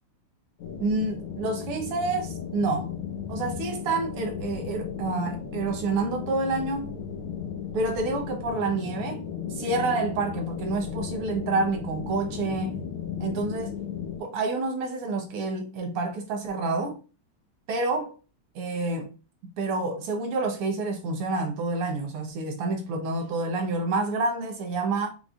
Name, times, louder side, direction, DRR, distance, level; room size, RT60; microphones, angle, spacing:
sound 1, 0.6-14.2, left 7 dB, 75° left, 1.8 m, -35 dB
voice 1, 0.8-2.9 3.3-7.0 7.7-9.2 9.5-12.8 13.2-13.7 14.2-17.0 17.7-18.2 18.6-19.1 19.6-25.1, right 3 dB, 85° right, 2.0 m, -28 dB
5.3 x 4.0 x 2.4 m
omnidirectional pair, 2.4 m